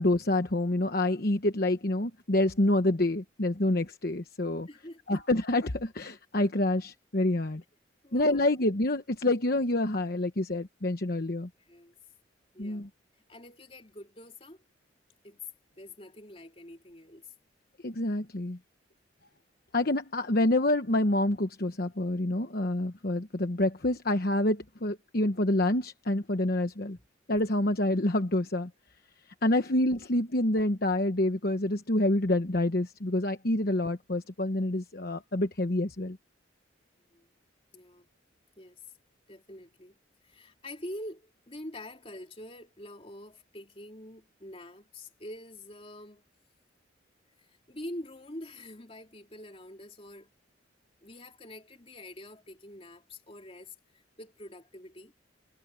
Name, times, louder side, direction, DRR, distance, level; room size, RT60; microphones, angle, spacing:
voice 1, 0.0-4.7 5.1-7.6 8.1-11.5 12.6-12.9 17.8-18.6 19.7-27.0 27.3-28.7 29.4-36.2, left 1 dB, 50° left, 1.1 m, -27 dB
voice 2, 4.7-5.2 8.0-8.4 11.6-11.9 12.5-12.9 13.3-14.6 15.2-15.4 15.8-17.3 26.9-27.0 29.4-29.7 33.6-33.8 37.0-37.3 37.7-38.1 38.6-38.8 39.3-40.0 40.2-46.2 47.4-50.3 51.0-55.1, left 1 dB, 30° left, 3.1 m, -46 dB
head